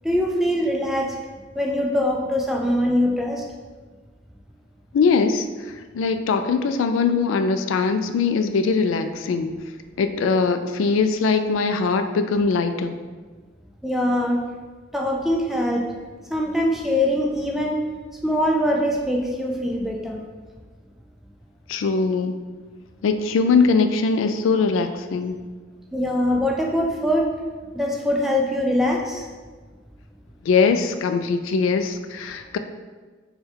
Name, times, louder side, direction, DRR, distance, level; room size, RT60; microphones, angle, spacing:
voice 1, 0.0-1.1 1.5-3.4 13.8-14.4 14.9-15.8 16.3-17.8 18.2-20.2 25.9-27.3 27.7-29.2, left 1 dB, ahead, -1 dB, 0.4 m, -22 dB
voice 2, 4.9-5.5 5.9-9.6 10.0-13.0 21.7-22.4 23.0-25.4 30.4-32.6, left 4 dB, 90° left, 8 dB, 0.3 m, -21 dB
3.5 x 2.3 x 4.3 m, 1.4 s
head